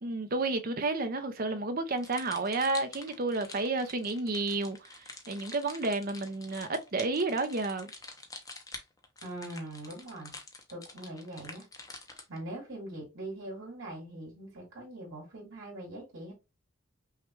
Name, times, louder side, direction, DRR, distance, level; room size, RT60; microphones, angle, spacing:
voice 1, 0.0-7.9, right 3 dB, 45° right, 0.6 m, -31 dB
sound 1, 2.0-12.4, left 3 dB, 15° left, 0.6 m, -47 dB
voice 2, 9.2-10.3 10.7-11.7 12.3-16.3, right 1 dB, 75° right, 2.5 m, -42 dB
5.6 x 2.3 x 3.1 m
head